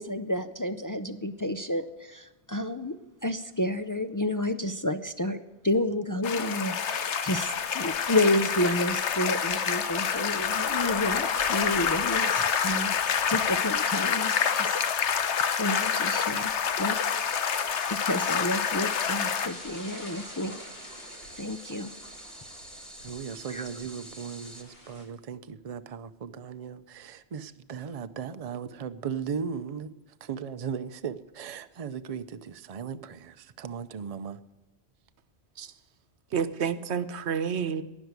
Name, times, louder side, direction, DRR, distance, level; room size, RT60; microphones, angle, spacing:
voice 1, 0.0-14.8 15.6-16.5 16.8-17.0 17.9-20.6 21.3-21.9 23.5-23.7, left 1 dB, 30° left, 0.4 m, -30 dB
sound 1, 6.2-19.5, left 7 dB, 85° left, 1.2 m, -27 dB
sound 2, 7.3-25.0, left 1 dB, 60° left, 3.3 m, -49 dB
sound 3, 17.1-24.6, right 1 dB, ahead, 1.4 m, -47 dB
voice 2, 23.0-29.9 30.2-34.4, right 6 dB, 40° right, 0.6 m, -37 dB
voice 3, 36.3-37.8, right 7 dB, 75° right, 1.1 m, -29 dB
18.5 x 6.2 x 9.3 m
omnidirectional pair, 1.1 m